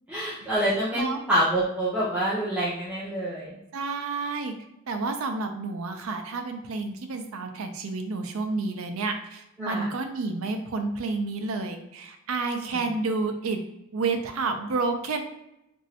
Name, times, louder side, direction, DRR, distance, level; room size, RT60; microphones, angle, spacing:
voice 1, 0.1-3.5 9.6-9.9, right 1 dB, 5° right, -9 dB, 0.5 m, -26 dB
voice 2, 3.7-4.5 4.9-13.6 13.9-15.2, right 3 dB, 90° right, 6 dB, 0.5 m, -30 dB
3.1 x 2.6 x 2.7 m, 0.87 s
head